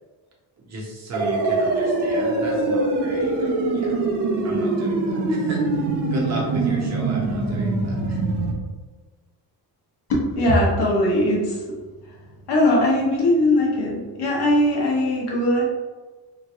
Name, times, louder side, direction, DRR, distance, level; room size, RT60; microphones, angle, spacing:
voice 1, 0.6-4.0 4.4-5.6 6.1-8.2, right 2 dB, 40° right, -2 dB, 0.8 m, -34 dB
sound 1, 1.1-8.5, right 2 dB, 85° right, 0.8 m, -23 dB
voice 2, 10.1-11.8 12.1-12.2 12.5-15.6, left 1 dB, 75° left, -3 dB, 1.1 m, -20 dB
3.3 x 3.0 x 2.4 m, 1.3 s
cardioid pair, 170°, 40 cm